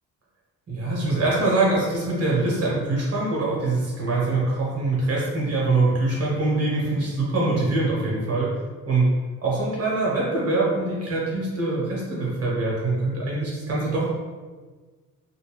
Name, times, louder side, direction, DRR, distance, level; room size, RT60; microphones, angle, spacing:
voice 1, 0.7-8.5 8.8-9.1 9.4-14.1, right 2 dB, 55° right, -5 dB, 1.3 m, -24 dB
2.9 x 2.5 x 3.0 m, 1.4 s
cardioid pair, 90°, 30 cm